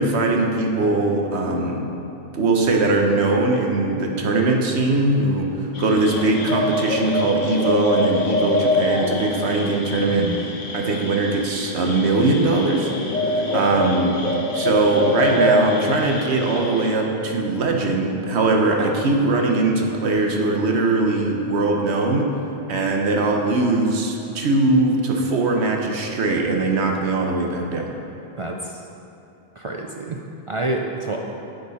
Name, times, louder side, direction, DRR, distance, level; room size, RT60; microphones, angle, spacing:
voice 1, 0.0-1.8 2.3-10.3 10.7-12.9 13.2-14.1 14.5-22.2 22.7-27.9, right 2 dB, 85° right, 1 dB, 1.2 m, -21 dB
sound 1, 5.7-16.9, left 1 dB, 50° left, 1.0 m, -25 dB
voice 2, 10.1-10.4 13.5-13.9 28.4-28.8 29.6-31.2, right 2 dB, 45° right, 1 dB, 0.4 m, -29 dB
sound 2, 12.9-20.7, left 1 dB, 30° left, 2.3 m, -38 dB
9.8 x 6.6 x 4.1 m, 2.8 s
omnidirectional pair, 1.1 m